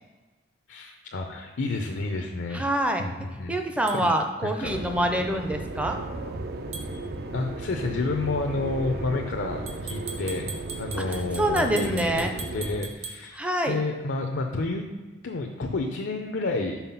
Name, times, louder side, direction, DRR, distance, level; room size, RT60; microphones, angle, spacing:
voice 1, 0.7-2.6 3.0-3.6 4.0-4.1 4.4-4.8 7.3-10.5 10.8-14.8 15.2-16.8, left 3 dB, 70° left, 3 dB, 0.6 m, -30 dB
voice 2, 2.5-3.1 3.5-6.0 11.0-12.3 13.3-13.8, right 1 dB, 5° right, 4 dB, 0.5 m, -26 dB
sound 1, 3.9-4.0 6.7-6.9 9.7-13.2, right 5 dB, 35° right, 0.9 m, -39 dB
sound 2, 4.6-12.8, right 2 dB, 55° right, 0.5 m, -35 dB
5.7 x 4.5 x 5.6 m, 1.3 s
head